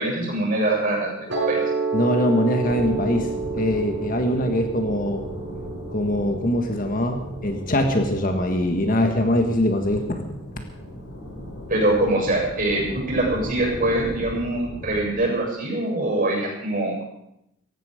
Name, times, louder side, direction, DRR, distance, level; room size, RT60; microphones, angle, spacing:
voice 1, 0.0-1.6 11.7-17.0, right 1 dB, 40° right, -2 dB, 7.7 m, -23 dB
Piano, 1.3-7.4, right 4 dB, 60° right, 6.5 m, -29 dB
voice 2, 1.9-5.3 5.9-10.3, left 1 dB, 40° left, 5 dB, 1.7 m, -23 dB
sound 1, 2.6-15.1, left 1 dB, 65° left, 5.5 m, -37 dB
18.0 x 15.5 x 5.2 m, 0.80 s
head